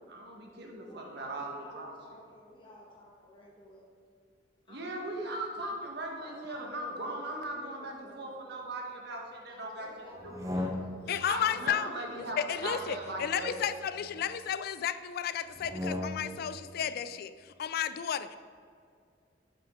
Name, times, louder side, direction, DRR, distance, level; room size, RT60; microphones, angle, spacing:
voice 1, 0.1-2.0 4.7-9.9 10.2-10.3 11.2-13.5, right 2 dB, 65° right, 0 dB, 1.3 m, -38 dB
voice 2, 0.9-3.8 4.7-5.0 6.2-8.3 9.5-11.9, equal, 25° left, -3 dB, 1.3 m, -52 dB
sound 1, 10.2-11.3 12.5-14.2 15.5-16.5, left 1 dB, 20° right, 0.7 m, -38 dB
voice 3, 11.1-18.4, left 8 dB, 55° left, 14 dB, 0.3 m, -33 dB
7.2 x 6.8 x 3.6 m, 2.2 s
head